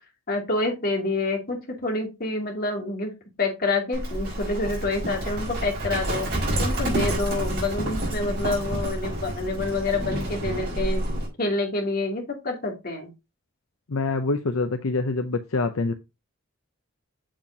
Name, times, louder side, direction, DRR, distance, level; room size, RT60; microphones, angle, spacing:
voice 1, 0.3-3.1 3.4-6.3 6.6-11.0 11.4-13.1, left 2 dB, 45° left, 1 dB, 2.5 m, -27 dB
Livestock farm animals working animals, 3.9-11.3, right 1 dB, 45° right, 4.8 m, -28 dB
voice 2, 13.9-15.9, left 3 dB, 75° left, 7 dB, 0.7 m, -25 dB
7.5 x 7.1 x 2.7 m, 0.25 s
head